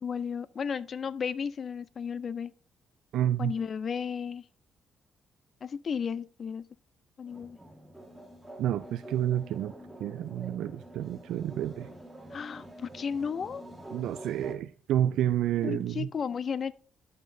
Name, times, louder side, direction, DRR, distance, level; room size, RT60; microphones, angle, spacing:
voice 1, 0.0-2.5 3.4-4.4 5.6-6.7 7.2-7.6 12.3-13.6 15.6-16.7, left 6 dB, 45° left, 0.4 m, -34 dB
voice 2, 3.1-3.5 8.6-9.7 10.0-11.9 13.9-16.1, right 11 dB, 85° right, 0.3 m, -29 dB
sound 1, 7.3-14.6, right 1 dB, 5° right, 1.8 m, -47 dB
11.0 x 6.5 x 2.6 m
cardioid pair, 90°, 0 cm